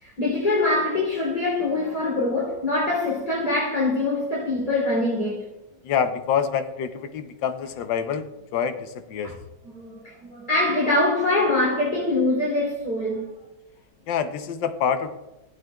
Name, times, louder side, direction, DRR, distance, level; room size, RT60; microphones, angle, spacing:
voice 1, 0.0-5.5 9.2-9.4 9.7-13.3, left 2 dB, 25° left, 3.1 m, -24 dB
voice 2, 5.8-8.3 8.5-9.3 14.1-15.1, left 7 dB, 85° left, 1.4 m, -26 dB
15.5 x 8.0 x 2.3 m
omnidirectional pair, 1.9 m